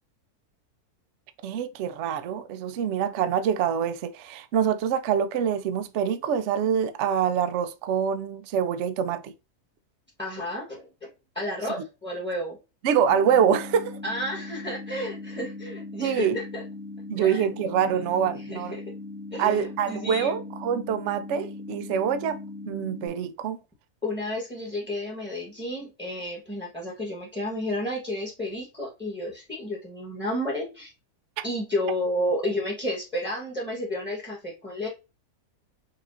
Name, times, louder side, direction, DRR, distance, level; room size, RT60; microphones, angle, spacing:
voice 1, 1.4-9.3 12.8-14.0 16.0-16.4 17.1-18.8 19.4-22.4 22.7-23.6 31.4-31.5, right 8 dB, 65° right, 0.7 m, -25 dB
voice 2, 10.2-11.1 11.3-12.6 14.0-16.6 17.2-17.4 17.8-18.1 18.5-18.8 19.3-20.3 24.0-30.9 31.4-34.9, left 1 dB, 5° left, 1.2 m, -31 dB
sound 1, 13.1-23.1, left 2 dB, 80° left, 2.1 m, -39 dB
5.5 x 2.5 x 2.6 m
omnidirectional pair, 1.6 m